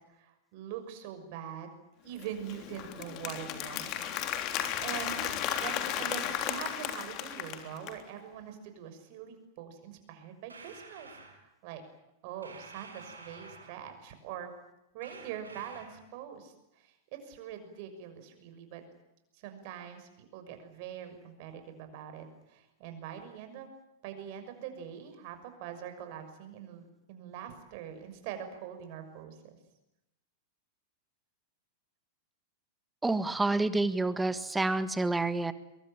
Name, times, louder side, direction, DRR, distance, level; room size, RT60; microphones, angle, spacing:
voice 1, 0.1-4.1 4.3-11.1 11.4-11.8 12.2-14.5 14.9-18.8 19.3-23.7 24.0-29.6, right 9 dB, 50° right, 8 dB, 6.3 m, -43 dB
Applause, 2.2-8.0, left 10 dB, 40° left, 3.5 m, -35 dB
sound 1, 10.5-11.4 12.4-14.0 15.0-16.1, right 3 dB, 85° right, 7.3 m, -50 dB
voice 2, 33.0-35.5, right 2 dB, 10° right, 13 dB, 1.7 m, -28 dB
23.5 x 23.0 x 9.0 m, 0.90 s
figure-of-eight pair, 100°, 0 cm